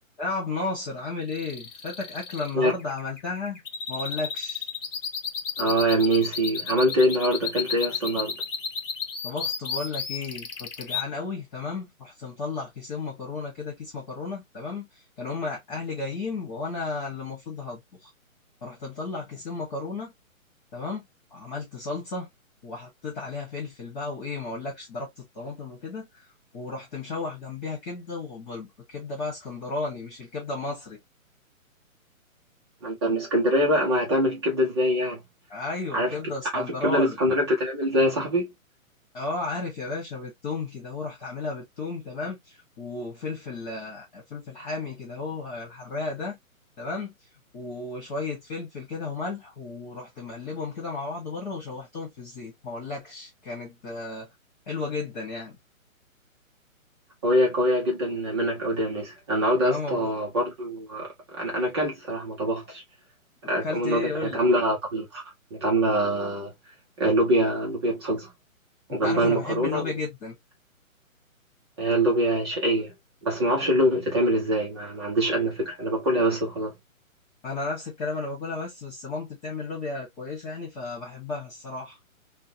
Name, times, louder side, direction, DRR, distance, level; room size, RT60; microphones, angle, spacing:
voice 1, 0.2-3.6 3.9-4.7 9.2-18.1 18.6-20.1 20.7-21.0 21.3-22.3 22.6-26.3 26.5-31.0 35.5-37.2 39.1-46.4 46.8-47.1 47.5-54.3 54.7-55.6 59.6-60.1 63.6-64.4 68.9-70.3 77.4-82.0, left 3 dB, 30° left, 1.5 m, -34 dB
sound 1, 1.3-11.0, left 6 dB, 60° left, 1.0 m, -32 dB
voice 2, 5.6-8.4 32.8-35.2 35.9-36.2 36.5-38.5 57.2-62.8 63.5-65.2 65.5-66.5 67.0-68.3 68.9-69.8 71.8-72.9 73.2-76.8, equal, 20° right, 0.7 m, -24 dB
3.5 x 2.3 x 2.8 m
hypercardioid pair, 155°, 42 cm